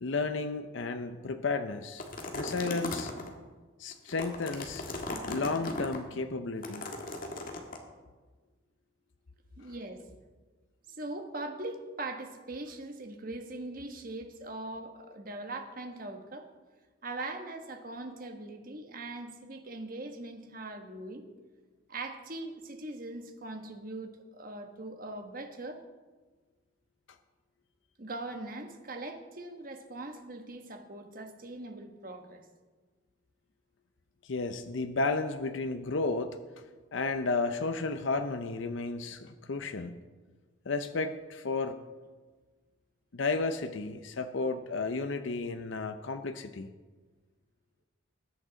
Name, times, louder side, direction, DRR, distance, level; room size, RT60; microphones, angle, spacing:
voice 1, 0.0-2.1 2.4-3.1 3.8-4.8 5.3-7.1 34.2-36.4 36.9-40.0 40.7-41.8 43.1-46.7, left 3 dB, 65° left, 8 dB, 0.6 m, -33 dB
sound 1, 2.0-3.3 3.9-6.0 6.6-7.8, left 2 dB, 45° left, 1.6 m, -37 dB
voice 2, 9.6-10.2 10.9-16.5 17.0-21.3 21.9-25.8 28.0-32.5, right 2 dB, 45° right, 5 dB, 1.3 m, -41 dB
20.5 x 8.7 x 4.0 m, 1.3 s
head